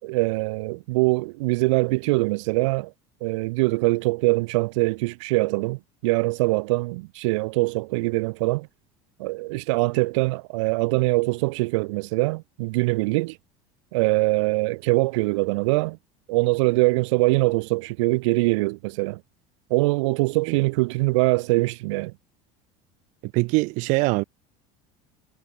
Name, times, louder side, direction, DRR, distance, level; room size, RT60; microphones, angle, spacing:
voice 1, 0.0-2.9 3.2-8.7 9.2-13.4 13.9-16.0 16.3-19.2 19.7-22.1, right 24 dB, 90° right, 2.8 m, -23 dB
voice 2, 23.3-24.2, right 27 dB, 55° right, 2.1 m, -22 dB
cardioid pair, 165°, 15 cm